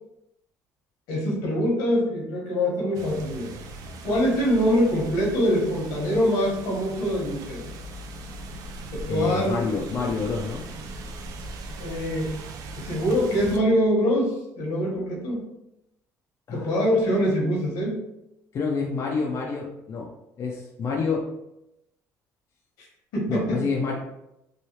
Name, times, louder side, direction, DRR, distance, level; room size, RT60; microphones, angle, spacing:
voice 1, 1.1-3.5 4.0-7.6 8.9-9.6 10.0-10.1 11.8-12.3 12.8-15.5 16.5-18.0 22.8-22.9 23.1-23.6, equal, 85° left, -2 dB, 1.2 m, -24 dB
sound 1, 2.9-13.6, right 2 dB, 65° right, 0.4 m, -39 dB
voice 2, 9.1-10.6 16.5-16.7 18.5-20.1 20.4-21.3 23.3-23.9, left 4 dB, 45° left, -1 dB, 0.5 m, -28 dB
3.1 x 2.3 x 2.8 m, 0.85 s
cardioid pair, 95°, 7 cm